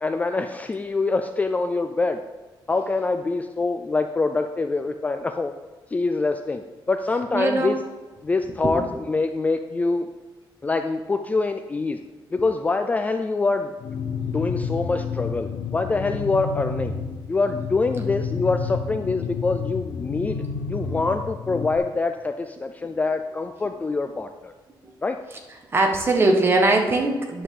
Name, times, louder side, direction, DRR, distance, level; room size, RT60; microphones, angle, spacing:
voice 1, 0.0-2.2 2.7-5.5 5.9-7.8 8.2-10.1 10.6-12.0 12.3-13.7 14.3-16.9 17.3-20.4 20.7-24.5 25.0-25.2, left 3 dB, 15° left, 7 dB, 0.3 m, -25 dB
voice 2, 7.3-7.8 8.5-8.9 24.8-24.9 25.7-27.4, right 2 dB, 25° right, 2 dB, 1.2 m, -21 dB
sound 1, 13.8-21.8, left 6 dB, 65° left, 0.7 m, -30 dB
10.0 x 6.5 x 3.7 m, 1.3 s
wide cardioid pair, 165°, 9 cm